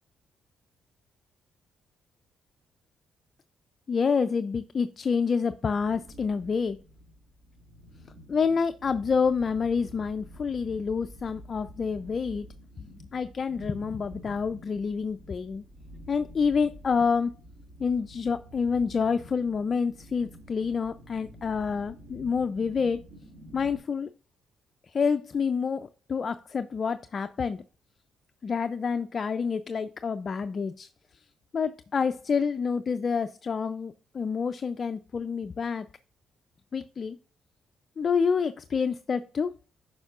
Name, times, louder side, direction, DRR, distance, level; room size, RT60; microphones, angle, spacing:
voice 1, 3.9-6.8 8.3-12.5 12.8-12.9 13.1-15.6 16.1-17.3 17.8-23.0 23.5-24.1 24.9-27.6 28.4-30.9 31.5-35.9 36.7-37.2 38.0-39.5, left 5 dB, 45° left, 0.3 m, -28 dB
sound 1, 5.7-23.8, equal, 50° right, 2.6 m, -49 dB
7.9 x 5.4 x 2.4 m
cardioid pair, 90°, 0 cm